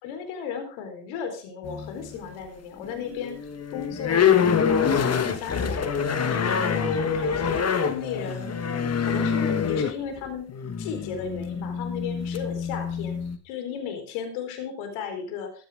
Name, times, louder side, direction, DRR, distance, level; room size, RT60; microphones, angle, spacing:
voice 1, 0.0-8.5 9.0-10.5 10.8-13.2 13.4-15.7, left 7 dB, 85° left, 6 dB, 4.3 m, -35 dB
sound 1, 1.6-2.3 2.8-13.4, left 7 dB, 30° left, 1.6 m, -26 dB
15.5 x 12.5 x 3.6 m, 0.39 s
supercardioid pair, 95°, 48 cm